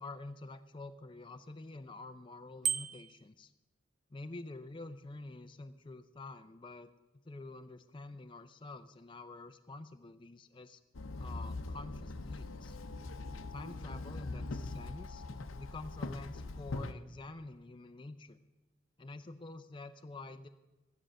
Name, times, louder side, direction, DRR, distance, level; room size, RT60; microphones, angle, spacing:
voice 1, 0.0-3.5 4.1-6.9 7.2-10.8 11.2-12.8 13.5-15.2 15.6-18.4 19.0-20.5, left 2 dB, 25° left, 8 dB, 0.5 m, -48 dB
Bicycle bell, 2.6-3.3, right 7 dB, 35° right, 0.4 m, -34 dB
Walk footsteps / Chatter / Hiss, 10.9-16.9, left 2 dB, 75° left, 0.7 m, -42 dB
13.5 x 10.0 x 6.3 m, 1.0 s
head